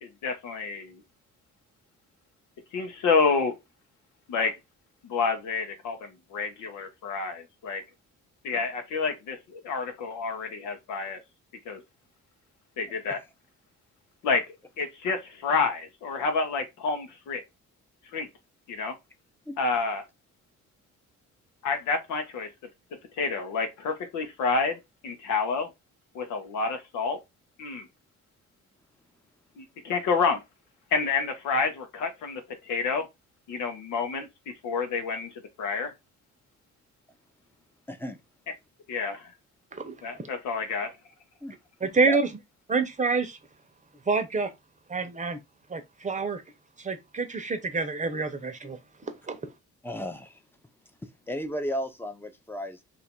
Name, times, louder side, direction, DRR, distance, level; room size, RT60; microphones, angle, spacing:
voice 1, 0.0-1.0 2.7-3.5 4.3-4.5 5.0-7.8 8.4-11.2 11.6-11.8 12.8-13.2 14.2-14.4 14.8-17.4 18.1-18.3 18.7-19.0 19.6-20.0 21.6-22.5 23.2-25.7 26.1-27.2 27.6-27.9 29.6-30.4 30.9-33.1 33.5-35.3 35.6-35.9 38.9-39.3 40.0-40.9, left 4 dB, 85° left, 0.9 m, -29 dB
voice 2, 37.9-38.2 41.4-41.5 41.8-42.2 49.8-50.4 51.3-52.8, equal, 5° left, 0.7 m, -34 dB
voice 3, 41.8-42.3 42.7-43.4 44.1-44.5 44.9-45.4 45.7-46.4 46.8-48.8 49.3-49.4, right 4 dB, 25° right, 0.8 m, -27 dB
2.8 x 2.6 x 4.3 m
cardioid pair, 90°, 30 cm